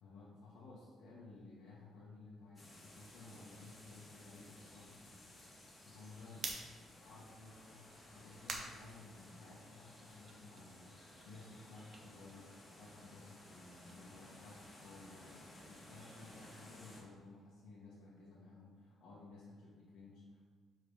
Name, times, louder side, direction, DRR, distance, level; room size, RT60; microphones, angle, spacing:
voice 1, 0.0-5.2 5.8-6.5 6.9-20.4, left 3 dB, 85° left, -7 dB, 1.3 m, -56 dB
sound 1, 2.6-17.0, left 1 dB, 25° left, 1.7 m, -58 dB
sound 2, 6.4-9.7 10.1-13.1 13.4-17.5, right 3 dB, 50° right, 0.9 m, -52 dB
5.1 x 3.9 x 4.8 m, 1.5 s
cardioid pair, 90°, 0 cm